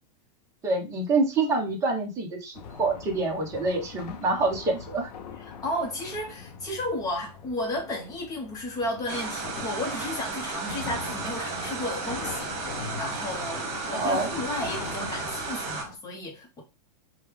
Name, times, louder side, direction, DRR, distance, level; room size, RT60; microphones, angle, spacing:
voice 1, 0.6-5.1 13.5-13.6 13.9-14.3, right 3 dB, 15° right, 0.9 m, -26 dB
sound 1, 2.5-16.0, left 6 dB, 70° left, 0.6 m, -42 dB
voice 2, 5.4-16.6, left 1 dB, 15° left, 0.9 m, -33 dB
sound 2, 9.1-15.8, right 4 dB, 50° right, 1.2 m, -34 dB
3.2 x 2.2 x 3.5 m
supercardioid pair, 160°, 21 cm